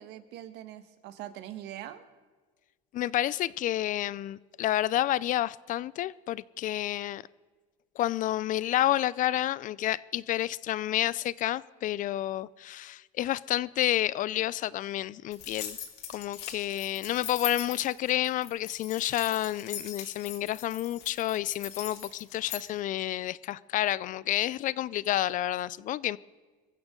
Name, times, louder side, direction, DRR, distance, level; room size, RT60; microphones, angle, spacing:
voice 1, 0.0-2.0, right 12 dB, 65° right, 10 dB, 1.5 m, -43 dB
voice 2, 2.9-7.2 8.0-15.8 16.1-26.2, left 13 dB, 45° left, 21 dB, 0.4 m, -30 dB
sound 1, 15.3-22.6, left 9 dB, 65° left, 3.4 m, -41 dB
23.0 x 15.5 x 3.8 m, 1.4 s
cardioid pair, 120°, 18 cm